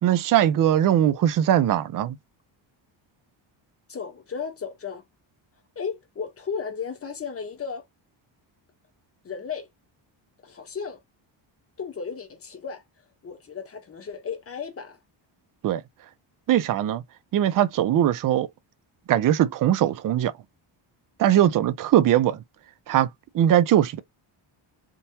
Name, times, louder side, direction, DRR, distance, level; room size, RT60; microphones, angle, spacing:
voice 1, 0.0-2.2 15.6-15.8 16.5-17.0 17.3-18.5 19.1-20.3 21.2-22.4 22.9-23.1 23.3-24.0, right 11 dB, 45° right, 0.4 m, -20 dB
voice 2, 3.9-5.0 5.8-7.8 9.2-9.7 10.4-11.0 11.8-12.8 13.2-15.0, left 6 dB, 30° left, 0.9 m, -34 dB
3.7 x 2.7 x 2.7 m
cardioid pair, 165°, 49 cm